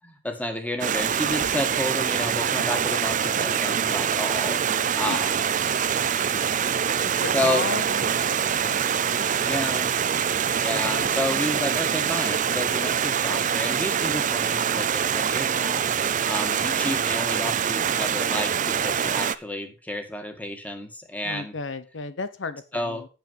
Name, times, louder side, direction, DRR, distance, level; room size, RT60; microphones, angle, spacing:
voice 1, 0.0-4.6 5.0-5.5 7.3-7.6 9.4-10.0 10.6-21.5 22.7-23.0, left 1 dB, 10° left, 6 dB, 1.9 m, -31 dB
Stream, 0.8-19.4, right 8 dB, 45° right, 0.5 m, -24 dB
voice 2, 7.0-9.2 10.7-11.3 21.2-23.1, left 4 dB, 80° left, 12 dB, 0.8 m, -35 dB
8.9 x 7.1 x 5.4 m, 0.32 s
head